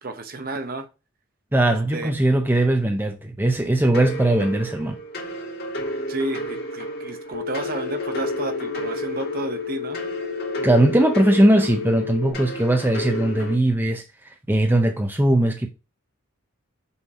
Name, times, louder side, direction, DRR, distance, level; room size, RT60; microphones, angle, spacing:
voice 1, 0.0-0.9 1.6-2.1 6.1-10.0, right 2 dB, 40° right, 0.7 m, -31 dB
voice 2, 1.5-5.0 10.6-15.7, right 1 dB, 10° right, 0.5 m, -20 dB
sound 1, 3.9-13.5, right 1 dB, 45° left, 1.6 m, -32 dB
Telephone, 7.3-12.3, left 8 dB, 85° left, 0.8 m, -32 dB
5.5 x 3.3 x 5.3 m
head